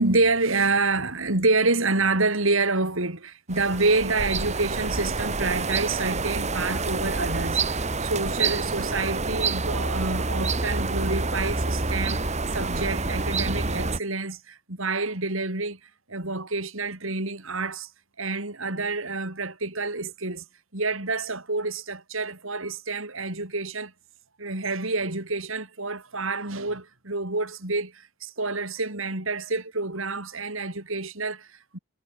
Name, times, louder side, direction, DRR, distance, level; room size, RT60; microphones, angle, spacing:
voice 1, 0.0-15.8 16.1-17.9 18.2-20.4 20.7-23.9 24.4-31.8, right 3 dB, 65° right, 4.2 m, -28 dB
sound 1, 3.5-14.0, right 3 dB, 30° right, 1.9 m, -27 dB
head